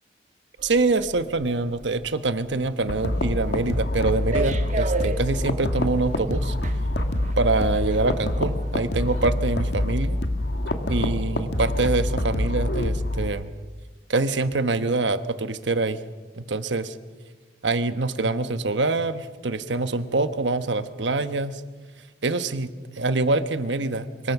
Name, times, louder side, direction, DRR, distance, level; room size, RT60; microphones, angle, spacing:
sound 1, 0.6-9.6 10.0-10.2, right 2 dB, 40° right, 1.4 m, -35 dB
voice 1, 0.6-6.5 7.4-10.2 10.9-13.5 14.1-16.0 16.3-16.9 17.6-21.6 22.2-24.3, right 3 dB, 75° right, 11 dB, 1.2 m, -25 dB
sound 2, 2.9-13.3, left 1 dB, 65° left, 1.9 m, -26 dB
25.0 x 22.0 x 6.0 m, 1.4 s
head